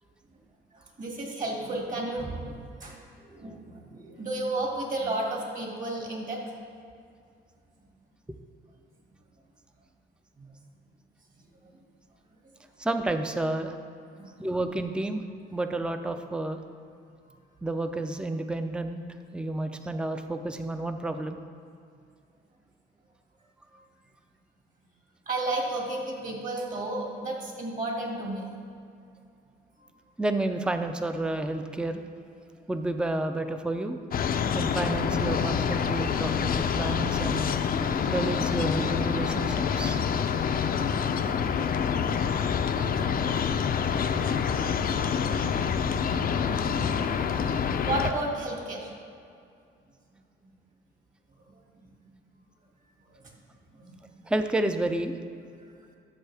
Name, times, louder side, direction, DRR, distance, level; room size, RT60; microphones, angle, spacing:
voice 1, 0.7-3.0 3.3-6.4 10.4-10.5 11.6-11.7 14.2-14.3 25.3-28.5 34.4-34.5 42.4-42.6 47.0-47.3 47.8-48.9 51.5-51.8 53.1-53.2 53.8-54.0, right 2 dB, 40° right, -1 dB, 2.2 m, -33 dB
voice 2, 12.8-13.7 14.4-15.2 15.5-16.6 17.6-19.0 19.3-21.4 30.2-32.0 32.7-34.0 34.5-37.6 38.1-40.0 54.3-55.1, right 2 dB, 5° right, 8 dB, 0.5 m, -30 dB
sound 1, 34.1-48.1, left 7 dB, 50° left, 0.5 m, -27 dB
12.5 x 6.4 x 3.4 m, 2.4 s
cardioid pair, 90°, 20 cm